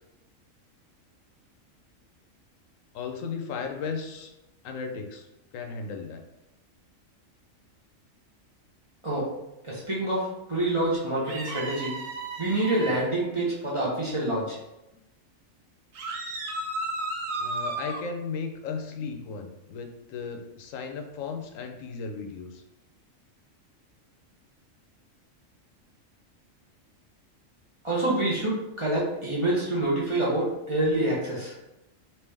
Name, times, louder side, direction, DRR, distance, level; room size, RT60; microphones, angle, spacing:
voice 1, 2.9-4.3 4.6-6.2 17.4-22.6, left 5 dB, 80° left, 3 dB, 0.9 m, -35 dB
voice 2, 9.6-11.9 12.4-14.6 27.8-31.6, right 1 dB, 30° right, -7 dB, 0.6 m, -27 dB
sound 1, 11.3-13.1 15.9-18.0, right 2 dB, 80° right, 1.1 m, -33 dB
3.3 x 2.8 x 3.3 m, 0.91 s
omnidirectional pair, 1.4 m